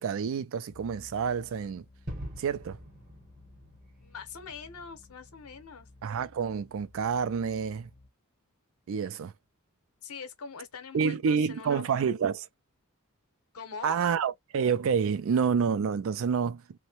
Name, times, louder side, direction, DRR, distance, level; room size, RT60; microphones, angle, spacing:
voice 1, 0.0-1.8 2.4-2.8 6.0-7.9 8.9-9.3 10.9-12.5 13.8-16.6, right 6 dB, 60° right, 0.3 m, -28 dB
sound 1, 0.7-8.1, left 2 dB, 35° left, 0.6 m, -55 dB
Gunshot gunfire / Fireworks / Boom, 2.1-6.9, equal, 40° right, 0.8 m, -46 dB
voice 2, 4.0-5.9 10.0-12.1 13.5-14.0, left 5 dB, 80° left, 0.8 m, -42 dB
2.6 x 2.1 x 2.9 m
head